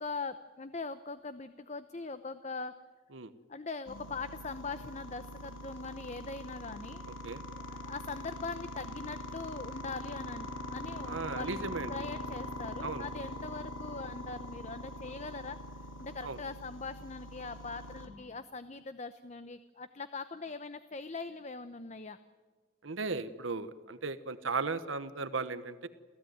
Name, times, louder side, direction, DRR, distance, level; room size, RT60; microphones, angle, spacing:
voice 1, 0.0-2.7 3.5-7.1 7.5-11.6 11.9-15.6 16.0-22.2, left 4 dB, 35° left, 11 dB, 0.8 m, -41 dB
sound 1, 3.9-18.1, equal, 80° left, 2.9 m, -43 dB
voice 2, 7.1-7.4 11.1-11.9 12.8-13.0 16.2-16.4 22.8-25.9, right 4 dB, 80° right, 12 dB, 1.2 m, -36 dB
28.5 x 16.0 x 9.4 m, 1.4 s
head